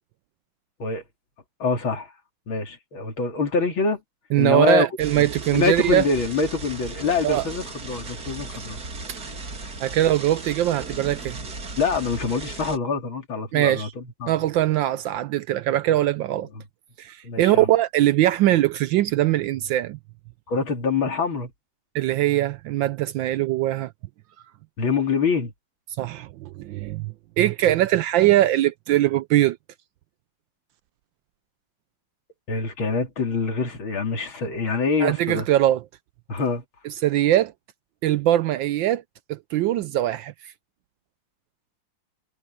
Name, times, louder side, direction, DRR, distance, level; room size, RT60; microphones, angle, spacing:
voice 1, 1.6-2.1 2.5-4.0 4.4-4.9 5.1-8.8 11.8-14.3 17.2-17.7 20.5-21.5 24.8-25.5 32.5-35.5 36.3-36.6, left 4 dB, 65° left, 3.6 m, -25 dB
voice 2, 4.3-6.1 7.2-7.4 9.1-9.2 9.8-11.4 13.5-13.9 14.3-16.5 17.0-20.0 21.9-23.9 26.0-29.6 35.0-35.8 36.8-37.5 38.0-39.0 39.3-40.3, right 13 dB, 75° right, 1.2 m, -21 dB
sound 1, 5.0-12.8, right 3 dB, 45° right, 3.5 m, -36 dB
omnidirectional pair, 2.3 m